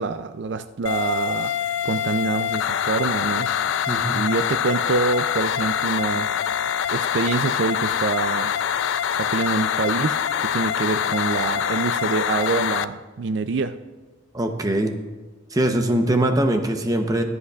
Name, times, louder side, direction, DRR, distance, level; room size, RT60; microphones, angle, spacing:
voice 1, 0.0-1.5 1.8-3.5 4.1-6.3 6.9-8.5 9.1-13.8, right 4 dB, 65° right, 11 dB, 0.4 m, -25 dB
sound 1, 0.9-12.9, left 8 dB, 85° left, 0.4 m, -24 dB
voice 2, 3.9-4.2 14.3-15.0 15.5-17.2, right 1 dB, 20° right, 5 dB, 0.7 m, -22 dB
22.5 x 8.1 x 2.4 m, 1.3 s
head